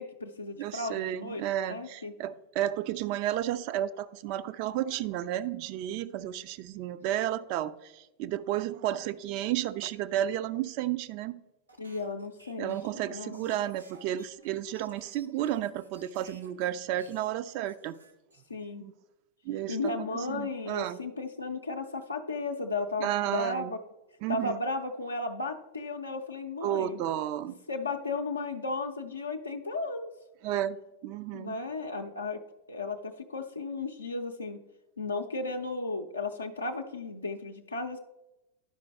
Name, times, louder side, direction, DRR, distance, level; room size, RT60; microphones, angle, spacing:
voice 1, 0.0-2.1 11.8-13.5 18.5-18.8 19.7-23.8 24.3-27.0 27.7-30.1 31.3-32.4 32.7-34.6 35.0-38.0, left 3 dB, 80° left, 0.5 m, -35 dB
voice 2, 0.6-11.4 12.6-18.0 18.8-18.9 19.5-21.0 23.0-23.7 24.2-24.6 26.6-27.6 30.4-31.6, right 12 dB, 45° right, 0.3 m, -32 dB
sound 1, 11.7-16.7 17.0-18.6, right 2 dB, 85° right, 1.0 m, -57 dB
11.0 x 5.2 x 3.4 m
figure-of-eight pair, 90°, 0 cm